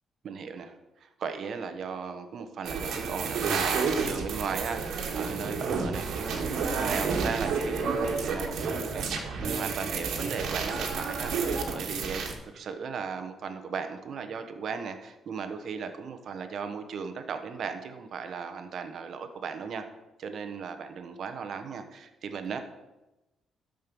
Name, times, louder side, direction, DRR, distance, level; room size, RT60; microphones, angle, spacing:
voice 1, 0.2-19.8 20.2-22.6, right 6 dB, 60° right, 8 dB, 1.1 m, -36 dB
sound 1, 2.6-12.3, right 5 dB, 75° right, 1.8 m, -30 dB
13.0 x 5.3 x 5.4 m, 1.0 s
cardioid pair, 90°, 0 cm